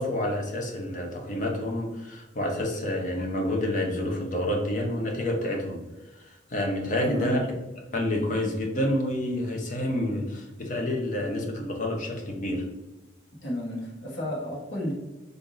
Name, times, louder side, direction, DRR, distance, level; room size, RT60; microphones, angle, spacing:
voice 1, 0.0-5.8 6.5-7.4 7.9-12.6, left 1 dB, 40° left, 1 dB, 0.7 m, -28 dB
voice 2, 7.0-7.4 13.4-14.9, equal, 65° left, -4 dB, 1.2 m, -31 dB
3.5 x 2.5 x 3.7 m, 1.1 s
head